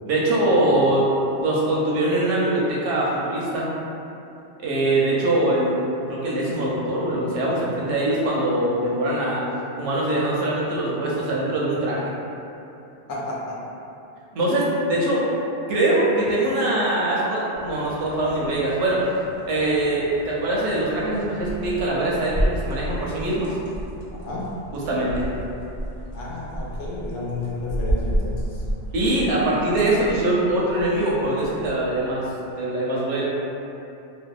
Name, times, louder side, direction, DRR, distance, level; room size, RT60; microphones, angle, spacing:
voice 1, 0.1-1.1 1.4-3.7 4.6-5.7 6.1-9.4 9.8-12.0 14.3-15.2 15.7-19.0 19.4-23.5 24.7-25.1 28.9-32.3 32.6-33.3, right 1 dB, 85° right, -5 dB, 0.9 m, -22 dB
voice 2, 13.1-13.6 19.6-19.7 24.1-24.5 26.1-28.6, left 2 dB, 80° left, -5 dB, 0.9 m, -32 dB
sound 1, 17.5-32.3, right 1 dB, 50° left, 0.6 m, -32 dB
2.6 x 2.1 x 2.3 m, 2.7 s
omnidirectional pair, 1.2 m